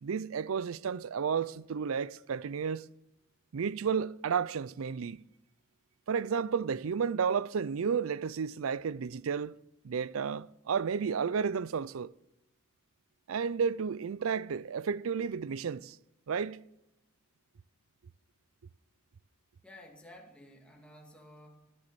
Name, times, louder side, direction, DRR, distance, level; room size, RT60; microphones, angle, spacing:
voice 1, 0.0-2.9 3.5-5.2 6.1-9.6 9.8-12.1 13.3-16.0 16.3-16.6, right 6 dB, 75° right, 0.4 m, -32 dB
voice 2, 19.6-21.7, left 1 dB, 5° left, 2.2 m, -53 dB
14.5 x 10.5 x 6.8 m
head